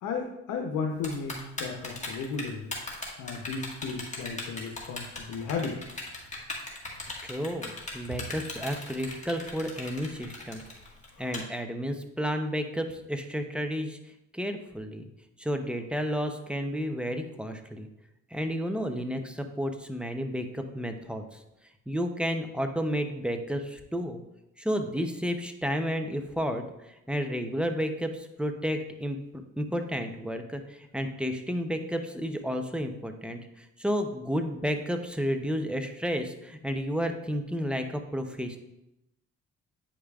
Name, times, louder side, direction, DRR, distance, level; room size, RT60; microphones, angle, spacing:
voice 1, 0.0-2.8 3.2-5.8 11.1-11.3, left 5 dB, 80° left, 1 dB, 0.8 m, -34 dB
Typing, 1.0-11.4, left 3 dB, 25° left, 1.6 m, -38 dB
voice 2, 7.2-10.6 11.2-14.0 14.3-15.1 15.4-17.9 18.3-21.4 21.9-24.2 24.6-26.6 27.1-29.2 29.6-38.6, equal, 5° right, 5 dB, 0.6 m, -31 dB
8.6 x 5.0 x 2.4 m, 0.89 s
cardioid pair, 90°, 30 cm